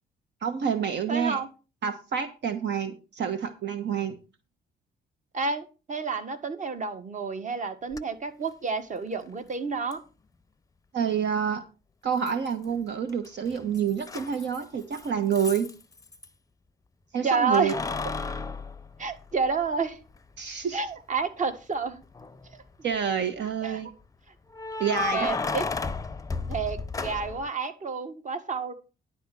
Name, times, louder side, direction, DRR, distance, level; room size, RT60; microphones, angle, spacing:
voice 1, 0.4-1.4 1.8-4.2 10.9-11.6 12.0-15.7 17.1-17.7 20.4-20.8 22.8-23.9 24.8-25.3, right 7 dB, 65° right, 8 dB, 1.2 m, -28 dB
voice 2, 1.1-1.5 5.3-10.0 17.2-17.7 19.0-20.0 20.7-22.0 23.6-23.8 24.9-25.7 26.5-28.7, right 4 dB, 40° right, 9 dB, 1.6 m, -30 dB
Keys jangling, 7.9-8.0 9.9-10.0 12.3-12.8 13.1-16.3 17.5-19.7 20.1-20.2 22.0-22.6 24.5-27.5, left 4 dB, 15° left, 0.6 m, -33 dB
11.0 x 4.3 x 7.7 m, 0.32 s
cardioid pair, 90°, 20 cm